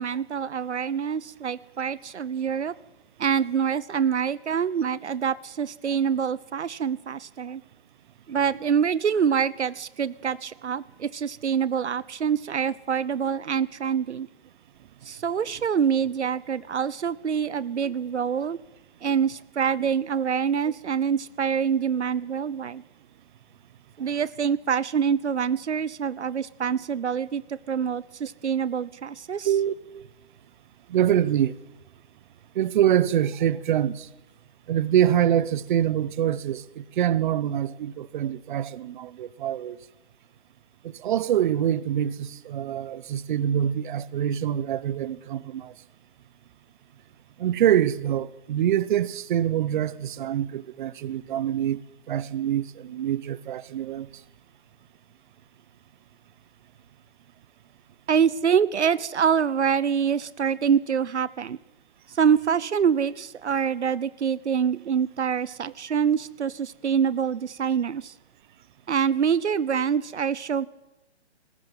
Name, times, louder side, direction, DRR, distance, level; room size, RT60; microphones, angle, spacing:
voice 1, 0.0-2.7 3.2-7.6 8.3-14.3 15.0-18.6 19.0-22.8 24.0-29.5 58.1-61.6 62.1-68.1 68.9-70.7, right 7 dB, 80° right, 0.9 m, -25 dB
voice 2, 29.4-30.1 30.9-31.5 32.5-34.1 34.7-39.8 40.8-45.7 47.4-54.1, right 10 dB, 45° right, 1.0 m, -25 dB
20.0 x 17.5 x 9.0 m
hypercardioid pair, 140°, 34 cm